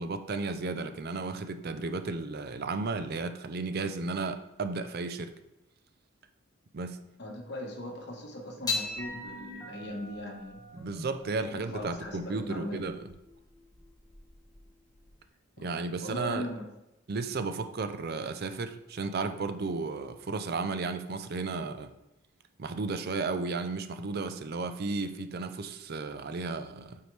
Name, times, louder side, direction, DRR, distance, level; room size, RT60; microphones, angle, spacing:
voice 1, 0.0-5.3 6.7-7.0 10.7-13.1 15.6-16.5 17.1-21.9 22.6-27.0, right 3 dB, 50° right, 9 dB, 0.5 m, -34 dB
voice 2, 7.2-10.7 11.4-12.9 15.6-16.7, left 1 dB, 55° left, 1 dB, 1.3 m, -39 dB
sound 1, 8.6-15.2, left 3 dB, 20° left, 1.4 m, -40 dB
8.0 x 4.7 x 3.3 m, 0.93 s
head